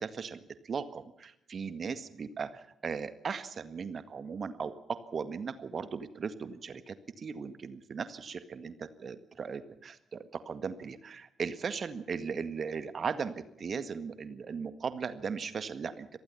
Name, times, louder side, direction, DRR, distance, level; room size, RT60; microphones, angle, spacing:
voice 1, 0.0-16.1, right 5 dB, 40° right, 13 dB, 1.8 m, -38 dB
26.0 x 18.5 x 5.7 m, 0.79 s
figure-of-eight pair, 40°, 0 cm